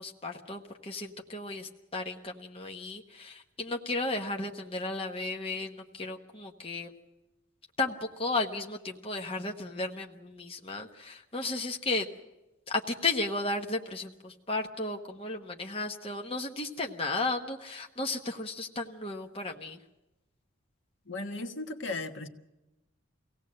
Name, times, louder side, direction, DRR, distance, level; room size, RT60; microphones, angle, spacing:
voice 1, 0.0-6.9 7.8-12.1 12.7-19.8, left 2 dB, 25° left, 3 dB, 1.1 m, -34 dB
voice 2, 21.1-22.3, left 2 dB, 65° left, 6 dB, 1.5 m, -36 dB
24.5 x 17.5 x 7.6 m, 1.0 s
head